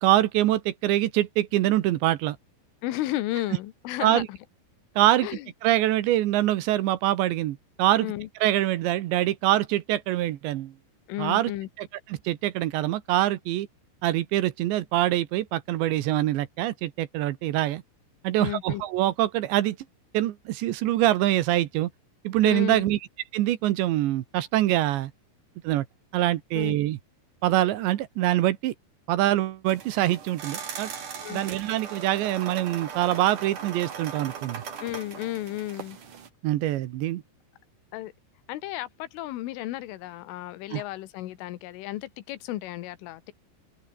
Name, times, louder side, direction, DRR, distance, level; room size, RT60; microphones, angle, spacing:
voice 1, 0.0-2.4 4.0-4.3 5.0-5.3 5.6-8.1 8.4-10.7 11.2-11.5 11.8-13.7 14.0-17.8 18.2-19.8 20.1-21.9 22.2-23.0 23.3-25.1 25.6-25.9 26.1-27.0 27.4-28.7 29.1-30.9 31.3-34.6 36.4-37.2 40.7-40.8, right 14 dB, 75° right, 3.3 m, -24 dB
voice 2, 2.8-4.4 5.2-5.5 8.0-8.3 11.1-11.7 18.4-18.8 22.4-22.9 26.6-26.8 31.2-31.4 34.8-36.0 37.9-38.1 38.5-43.3, left 15 dB, 85° left, 3.9 m, -33 dB
sound 1, 29.7-36.3, right 7 dB, 45° right, 4.2 m, -39 dB
open air
omnidirectional pair, 5.6 m